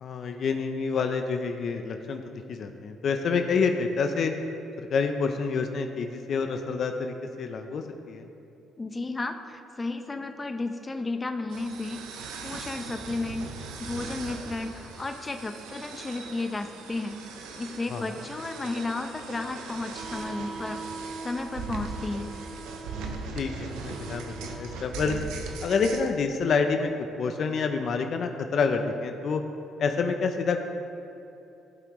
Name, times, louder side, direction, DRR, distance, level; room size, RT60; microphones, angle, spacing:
voice 1, 0.0-4.3 4.8-8.3 17.9-18.0 23.3-25.2 25.6-26.9 27.2-29.4 29.8-30.6, left 5 dB, 55° left, 6 dB, 0.6 m, -28 dB
voice 2, 8.8-12.0 12.4-13.5 13.8-17.2 17.6-22.3, left 2 dB, 25° left, 7 dB, 0.8 m, -33 dB
sound 1, 11.5-26.1, right 4 dB, 80° right, 0.9 m, -39 dB
14.5 x 5.8 x 3.1 m, 2.9 s
supercardioid pair, 65°, 0 cm